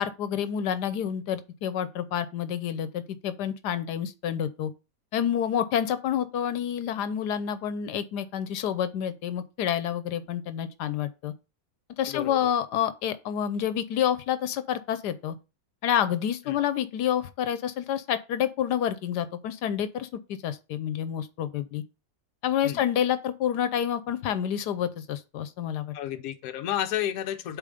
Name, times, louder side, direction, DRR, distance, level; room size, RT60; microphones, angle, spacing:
voice 1, 0.0-4.7 5.1-11.3 12.0-15.4 15.8-21.8 22.4-25.9, left 9 dB, 85° left, 1.3 m, -28 dB
voice 2, 12.1-12.5 16.5-16.6 22.6-22.8 25.9-27.6, left 11 dB, 70° left, 1.1 m, -31 dB
8.4 x 3.5 x 5.0 m
omnidirectional pair, 1.7 m